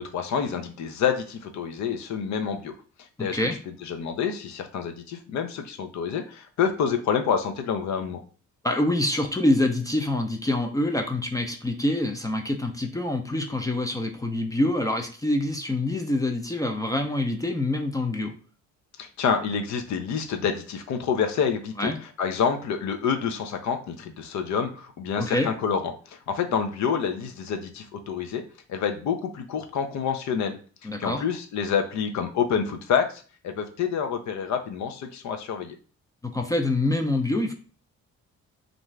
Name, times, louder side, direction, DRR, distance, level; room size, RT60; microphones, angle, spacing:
voice 1, 0.0-2.7 3.2-3.4 3.8-8.2 19.0-21.9 22.2-28.4 28.7-30.6 31.0-35.8, left 7 dB, 70° left, 6 dB, 0.6 m, -27 dB
voice 2, 3.2-3.5 8.6-18.3 21.8-22.0 25.2-25.5 30.8-31.2 36.2-37.5, left 1 dB, 10° left, 4 dB, 0.4 m, -26 dB
2.5 x 2.3 x 3.1 m, 0.39 s
cardioid pair, 90°, 30 cm